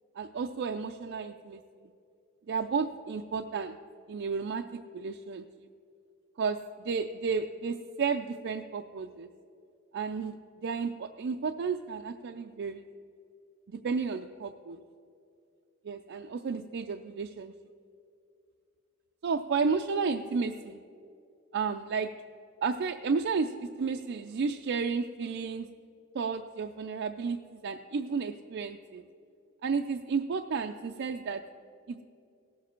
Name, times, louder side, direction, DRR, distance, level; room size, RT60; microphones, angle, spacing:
voice 1, 0.2-1.6 2.5-3.8 4.1-4.6 4.9-5.5 6.4-6.6 6.8-9.3 9.9-10.4 10.6-12.8 13.7-14.8 15.8-17.5 19.2-20.8 21.5-22.1 22.6-25.7 26.1-29.0 29.6-31.4 31.9-32.0, right 5 dB, 55° right, 5 dB, 0.4 m, -32 dB
17.5 x 7.5 x 4.3 m, 2.5 s
head